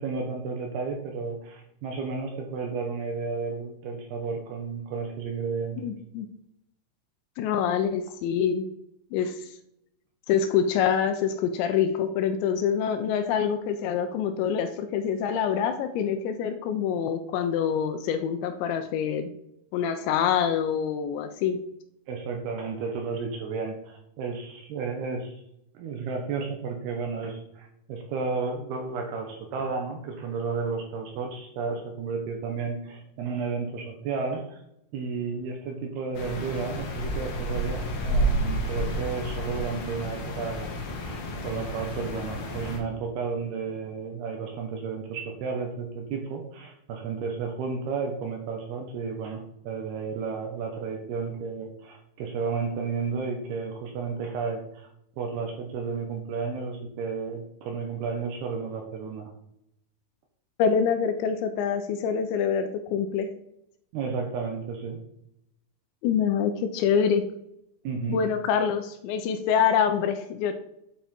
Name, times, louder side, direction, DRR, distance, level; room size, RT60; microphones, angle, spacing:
voice 1, 0.0-5.8 22.1-25.4 25.7-34.6 34.9-41.2 41.4-54.9 55.2-59.3 63.9-65.0 67.8-68.2, right 5 dB, 75° right, 3 dB, 2.6 m, -32 dB
voice 2, 5.8-6.3 7.4-8.7 9.1-9.5 10.3-19.3 19.7-21.6 60.6-63.3 66.0-67.2 68.1-70.5, left 7 dB, 80° left, 8 dB, 2.8 m, -25 dB
sound 1, 36.1-42.8, right 1 dB, 60° left, 2.7 m, -30 dB
8.7 x 5.6 x 4.4 m, 0.79 s
omnidirectional pair, 5.5 m